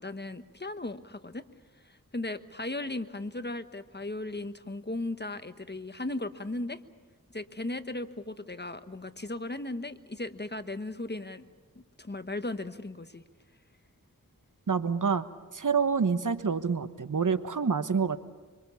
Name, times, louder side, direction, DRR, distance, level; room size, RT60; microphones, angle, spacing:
voice 1, 0.0-1.4 1.9-6.8 7.3-11.4 11.7-13.2, left 2 dB, 30° left, 10 dB, 1.3 m, -36 dB
voice 2, 14.7-15.3 15.5-18.2, right 5 dB, 60° right, 12 dB, 1.1 m, -27 dB
25.5 x 25.0 x 7.1 m, 1.4 s
wide cardioid pair, 45°, 35 cm